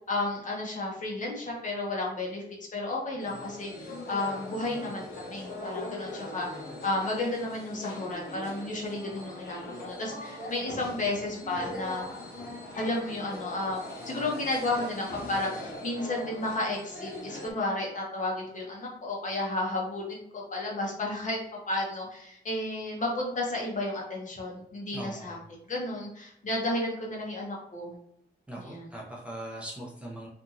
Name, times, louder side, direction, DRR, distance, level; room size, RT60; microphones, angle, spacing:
voice 1, 0.1-2.4 2.7-12.1 12.7-21.4 21.7-25.4 25.7-27.9 28.6-28.9, left 2 dB, 50° left, -2 dB, 0.8 m, -32 dB
sound 1, 3.2-17.5, left 1 dB, 90° left, 0.8 m, -41 dB
voice 2, 24.9-25.4 28.5-30.3, right 1 dB, 5° right, -4 dB, 0.5 m, -40 dB
2.8 x 2.6 x 2.4 m, 0.76 s
wide cardioid pair, 165°, 17 cm